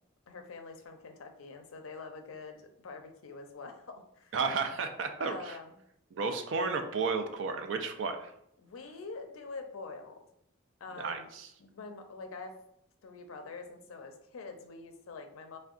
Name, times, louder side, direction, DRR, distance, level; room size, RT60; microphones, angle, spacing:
voice 1, 0.3-4.3 5.2-5.8 8.6-10.2 10.8-11.3 11.6-12.6 13.0-15.6, left 4 dB, 75° left, 6 dB, 0.4 m, -45 dB
voice 2, 4.3-5.6 6.1-8.3 11.0-11.5, right 4 dB, 60° right, 7 dB, 0.3 m, -33 dB
3.6 x 2.2 x 2.4 m, 0.74 s
head